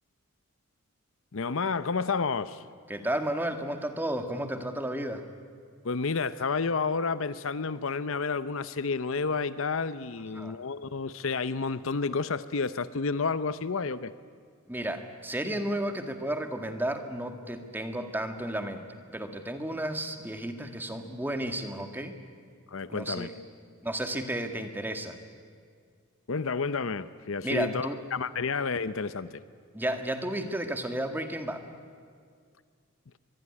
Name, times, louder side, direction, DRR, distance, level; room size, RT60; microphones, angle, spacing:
voice 1, 1.3-2.6 5.8-14.1 22.7-23.3 26.3-29.4, left 4 dB, 65° left, 14 dB, 0.7 m, -30 dB
voice 2, 2.9-5.2 10.3-10.6 14.7-18.8 19.1-22.2 22.9-23.3 23.8-25.2 27.4-28.0 29.7-31.6, right 1 dB, 10° right, 6 dB, 1.7 m, -32 dB
24.0 x 22.5 x 9.8 m, 2.1 s
head